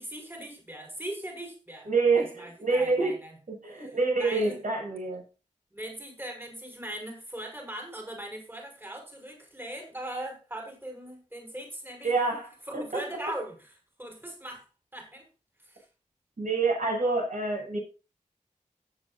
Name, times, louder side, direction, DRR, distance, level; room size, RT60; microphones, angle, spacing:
voice 1, 0.0-1.9 2.2-3.4 3.7-4.6 5.7-12.1 12.7-13.7 14.0-14.6 14.9-15.3 15.6-15.9, right 1 dB, 15° right, 3 dB, 5.8 m, -40 dB
voice 2, 1.9-3.1 3.5-5.2 12.0-13.0 16.4-17.8, right 3 dB, 75° right, 0 dB, 7.1 m, -27 dB
17.0 x 8.6 x 2.5 m, 0.31 s
cardioid pair, 45°, 13 cm